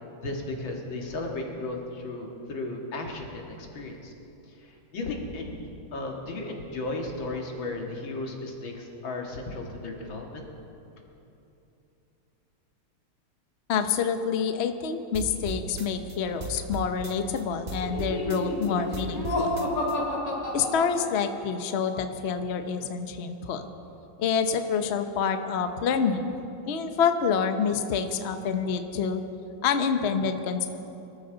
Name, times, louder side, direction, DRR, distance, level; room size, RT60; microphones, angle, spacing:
voice 1, 0.2-4.1 4.9-10.4, left 2 dB, 65° left, 1 dB, 2.5 m, -35 dB
voice 2, 13.7-19.5 20.5-23.6 24.2-26.2 26.7-29.2 29.6-30.7, left 6 dB, 80° left, 7 dB, 0.5 m, -27 dB
sound 1, 15.1-17.4 17.7-19.9, right 3 dB, 85° right, 0.4 m, -37 dB
Laughter, 17.8-21.5, left 1 dB, 40° left, 2.5 m, -30 dB
24.5 x 13.5 x 3.9 m, 2.9 s
omnidirectional pair, 2.4 m